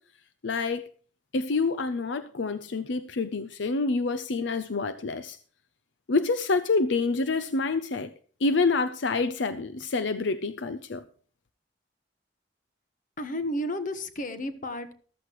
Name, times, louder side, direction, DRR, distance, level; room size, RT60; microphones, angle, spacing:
voice 1, 0.4-0.8 1.3-5.4 6.1-8.1 8.4-11.0, left 3 dB, 75° left, 0.7 m, -27 dB
voice 2, 13.2-14.9, left 1 dB, 45° left, 1.3 m, -32 dB
14.0 x 13.0 x 3.1 m
head